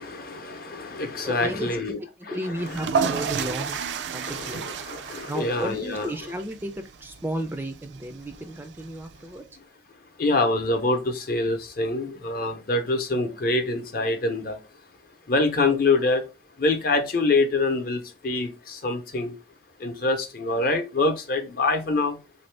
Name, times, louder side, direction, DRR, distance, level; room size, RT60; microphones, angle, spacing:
voice 1, 0.0-2.0 2.3-2.8 3.4-3.5 4.2-6.1 10.2-14.6 15.3-16.2 16.6-19.3 19.8-22.2, left 2 dB, 55° left, 0.7 m, -25 dB
voice 2, 1.2-1.8 2.3-3.8 4.1-4.6 5.3-9.5, right 1 dB, 10° right, 0.3 m, -33 dB
sound 1, 2.6-9.4, right 6 dB, 85° right, 0.4 m, -32 dB
3.7 x 2.6 x 3.2 m
head